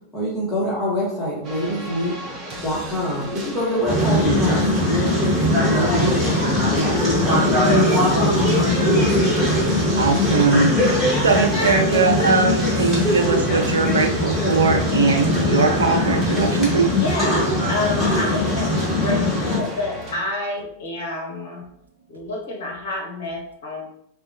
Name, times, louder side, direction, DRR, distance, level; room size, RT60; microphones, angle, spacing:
voice 1, 0.1-2.1 2.6-9.2, equal, 10° left, -8 dB, 1.1 m, -26 dB
sound 1, 1.4-20.2, equal, 35° right, 0.7 m, -35 dB
sound 2, 3.8-19.6, left 1 dB, 5° right, 1.4 m, -20 dB
voice 2, 10.0-16.9, right 4 dB, 70° right, 3 dB, 0.5 m, -20 dB
voice 3, 16.9-17.4 17.7-21.6 22.1-23.9, left 2 dB, 55° left, -1 dB, 0.8 m, -29 dB
4.2 x 2.2 x 2.8 m, 0.72 s
figure-of-eight pair, 90°, 0 cm